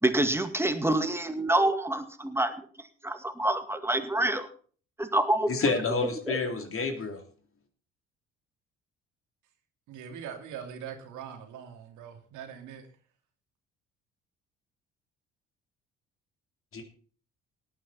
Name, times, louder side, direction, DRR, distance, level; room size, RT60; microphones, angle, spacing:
voice 1, 0.0-2.6 3.0-4.5 5.0-5.5 6.0-6.4, right 1 dB, 5° right, 8 dB, 2.1 m, -27 dB
voice 2, 5.5-7.2 16.7-16.8, left 4 dB, 40° left, 6 dB, 3.0 m, -29 dB
voice 3, 9.9-12.9, right 8 dB, 65° right, 5 dB, 2.6 m, -42 dB
18.0 x 9.2 x 4.1 m, 0.43 s
hypercardioid pair, 55°, 32 cm